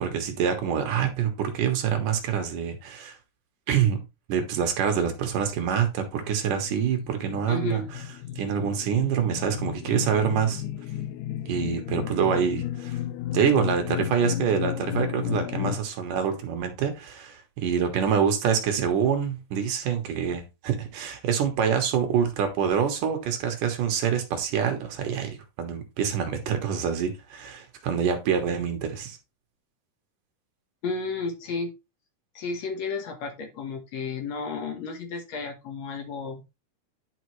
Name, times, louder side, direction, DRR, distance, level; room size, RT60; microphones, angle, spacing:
voice 1, 0.0-3.2 3.7-4.0 4.3-7.8 8.4-10.6 11.5-13.0 13.3-29.2, right 7 dB, 65° right, 2.6 m, -26 dB
sound 1, 6.0-15.8, left 12 dB, 85° left, 1.8 m, -33 dB
voice 2, 7.5-7.9 30.8-31.7 32.4-36.4, left 4 dB, 65° left, 1.9 m, -32 dB
10.5 x 5.1 x 3.1 m
omnidirectional pair, 4.2 m